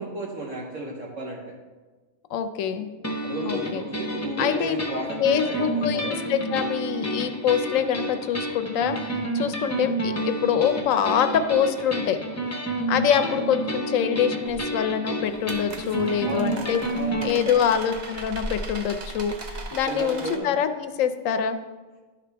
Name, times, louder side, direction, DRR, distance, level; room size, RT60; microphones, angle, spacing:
voice 1, 0.0-1.5 3.2-6.2 9.6-9.8 13.1-13.4 16.2-17.6 19.9-20.5, right 1 dB, 65° right, -2 dB, 1.3 m, -34 dB
voice 2, 2.3-2.9 3.5-3.8 4.4-12.2 12.9-16.8 17.2-21.6, left 8 dB, 75° left, 9 dB, 0.9 m, -25 dB
sound 1, 3.0-17.3, right 1 dB, 15° left, 0.6 m, -30 dB
sound 2, 14.5-14.6 15.3-20.4, right 1 dB, 45° right, 0.6 m, -37 dB
11.0 x 5.0 x 3.4 m, 1.3 s
omnidirectional pair, 1.4 m